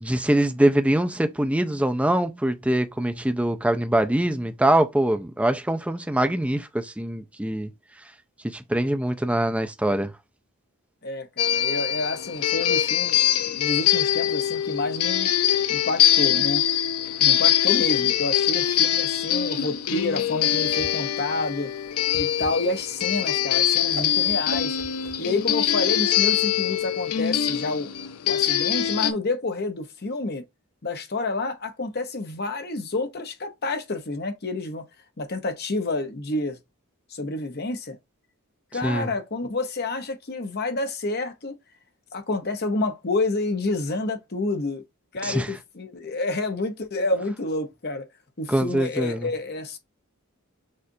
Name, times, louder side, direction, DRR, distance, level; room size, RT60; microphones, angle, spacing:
voice 1, 0.0-7.7 8.4-10.1 38.8-39.1 45.2-45.5 48.5-49.3, right 1 dB, 5° right, 0.5 m, -23 dB
voice 2, 11.0-15.3 15.7-16.6 17.2-21.7 22.2-24.8 25.2-27.9 28.2-30.4 30.8-34.8 35.2-36.6 37.1-38.0 38.7-41.5 42.1-44.8 45.1-48.1 48.4-49.8, left 2 dB, 45° left, 0.9 m, -29 dB
sound 1, 11.4-29.1, left 11 dB, 85° left, 0.5 m, -23 dB
Whoosh swoosh swish, 20.2-25.7, right 2 dB, 65° right, 1.6 m, -42 dB
6.5 x 2.5 x 2.7 m
head